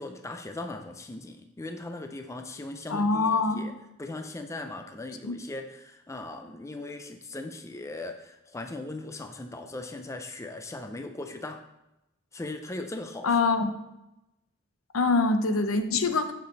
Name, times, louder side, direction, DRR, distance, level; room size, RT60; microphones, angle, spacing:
voice 1, 0.0-3.7 4.0-11.6 12.3-13.4, left 2 dB, 15° left, 6 dB, 0.4 m, -39 dB
voice 2, 2.9-3.7 5.2-5.3 13.2-13.7 14.9-16.3, left 3 dB, 75° left, 8 dB, 0.7 m, -24 dB
6.8 x 6.5 x 4.0 m, 0.91 s
head